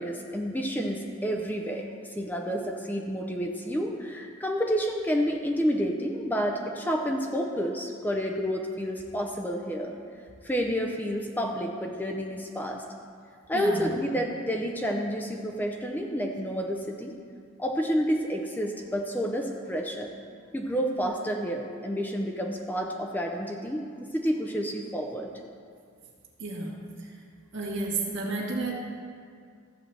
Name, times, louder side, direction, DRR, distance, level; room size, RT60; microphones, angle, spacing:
voice 1, 0.0-1.9 2.2-10.0 10.4-12.8 13.5-17.1 17.6-20.1 20.5-23.9 24.1-25.3, equal, 10° left, 2 dB, 0.5 m, -29 dB
voice 2, 13.5-13.9 26.4-26.7 27.0-27.2 27.5-28.7, right 3 dB, 60° right, -3 dB, 1.8 m, -31 dB
14.0 x 7.6 x 3.3 m, 2.2 s
head